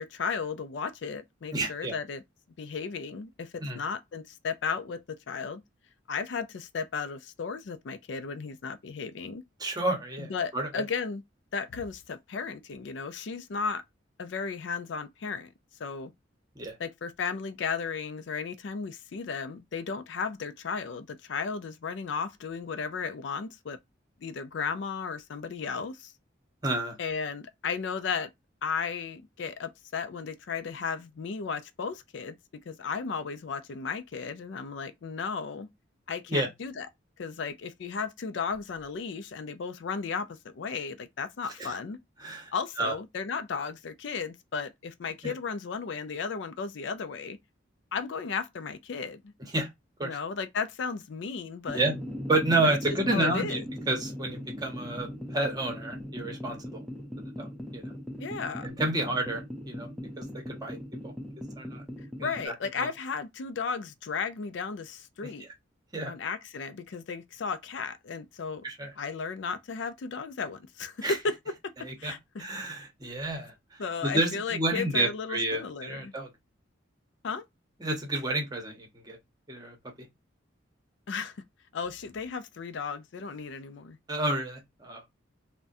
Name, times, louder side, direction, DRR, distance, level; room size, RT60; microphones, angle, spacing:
voice 1, 0.0-2.2 2.6-5.6 6.1-9.4 10.2-11.2 11.5-13.8 14.2-15.5 15.8-16.1 16.8-23.8 24.2-26.1 27.0-28.3 28.6-32.4 32.7-35.7 36.1-36.9 37.2-42.0 42.5-47.4 47.9-49.3 50.0-51.9 52.6-52.7 53.1-53.6 58.2-58.7 62.2-65.4 66.1-68.6 69.0-71.4 71.6-71.7 72.0-72.4 73.8-76.1 77.2-77.4 81.1-81.4 81.7-84.0, left 5 dB, 65° left, 0.4 m, -34 dB
voice 2, 1.5-1.9 3.6-3.8 9.6-10.8 16.5-16.7 26.6-27.0 36.3-36.5 41.6-41.8 42.2-42.5 42.8-42.9 45.2-45.3 49.5-49.7 50.0-50.2 51.7-51.9 52.3-53.6 53.9-56.8 57.4-57.9 58.6-59.9 60.2-60.8 61.0-61.1 61.6-61.8 62.2-62.5 62.8-62.9 65.2-65.5 65.9-66.1 68.6-68.9 71.0-71.2 71.8-76.3 77.8-79.2 79.5-79.8 84.1-85.0, right 2 dB, 20° right, 0.9 m, -30 dB
sound 1, 51.7-62.5, equal, ahead, 0.5 m, -39 dB
3.5 x 2.2 x 2.6 m
head